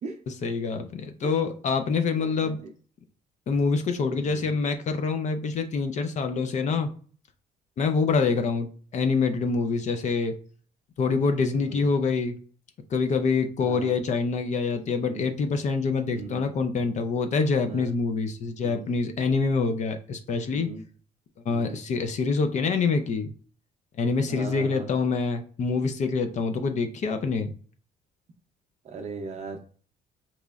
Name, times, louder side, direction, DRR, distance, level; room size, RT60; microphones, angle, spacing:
voice 1, 0.3-2.6 3.5-6.9 7.8-10.4 11.0-12.4 12.9-20.7 21.5-23.3 24.0-27.5, left 4 dB, 45° left, 7 dB, 0.4 m, -26 dB
voice 2, 4.2-4.5 6.7-6.8 11.6-11.9 13.6-14.0 15.0-15.3 16.1-16.5 17.7-17.9 18.6-18.9 20.5-20.8 21.5-21.8 24.3-24.9 28.8-29.6, right 4 dB, 40° right, 2 dB, 0.5 m, -39 dB
3.9 x 3.0 x 2.3 m, 0.42 s
cardioid pair, 110°, 17 cm